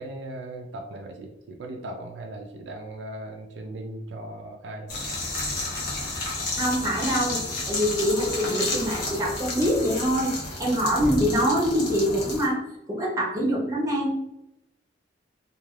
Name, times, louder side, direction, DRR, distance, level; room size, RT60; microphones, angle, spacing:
voice 1, 0.0-5.0, right 1 dB, 70° right, 2 dB, 0.4 m, -38 dB
sound 1, 4.9-12.5, left 2 dB, 55° left, 0.9 m, -31 dB
voice 2, 6.6-7.4 7.7-12.6 12.9-14.3, equal, 20° right, -3 dB, 0.8 m, -24 dB
3.1 x 2.4 x 2.3 m, 0.89 s
head